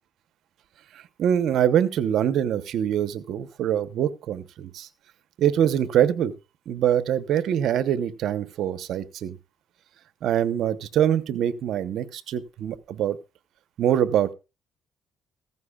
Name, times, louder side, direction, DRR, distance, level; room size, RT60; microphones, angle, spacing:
voice 1, 0.9-4.9 5.4-6.3 6.7-9.4 10.2-13.2 13.8-14.3, right 10 dB, 75° right, 14 dB, 0.9 m, -24 dB
15.0 x 15.0 x 2.4 m, 0.29 s
cardioid pair, 90°, 0 cm